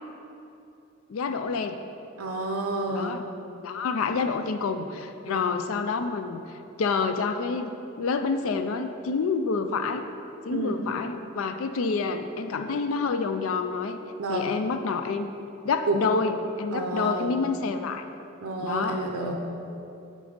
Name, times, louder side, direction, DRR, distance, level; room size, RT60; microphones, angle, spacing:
voice 1, 1.1-1.8 2.9-3.2 3.6-6.4 6.8-7.7 8.0-10.0 10.5-14.0 14.3-15.3 15.6-18.0 18.6-19.0, left 4 dB, 70° left, 8 dB, 0.4 m, -28 dB
voice 2, 2.2-3.2 5.3-5.6 10.5-10.8 14.2-14.5 15.9-16.0 16.7-17.4 18.4-19.3, right 2 dB, 85° right, 3 dB, 0.6 m, -30 dB
8.4 x 4.0 x 5.1 m, 2.8 s
head